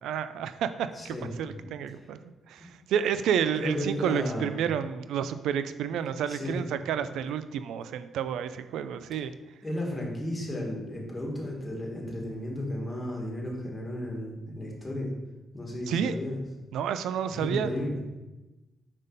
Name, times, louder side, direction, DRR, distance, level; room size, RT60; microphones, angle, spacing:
voice 1, 0.0-2.2 2.5-9.3 15.9-16.1 16.7-17.7, right 8 dB, 80° right, 11 dB, 0.3 m, -30 dB
voice 2, 0.9-1.3 2.0-2.1 3.6-4.5 6.3-6.6 9.6-15.1 15.5-16.4 17.3-18.0, left 1 dB, 15° left, -1 dB, 1.9 m, -33 dB
5.3 x 5.2 x 4.1 m, 1.1 s
cardioid pair, 90°, 0 cm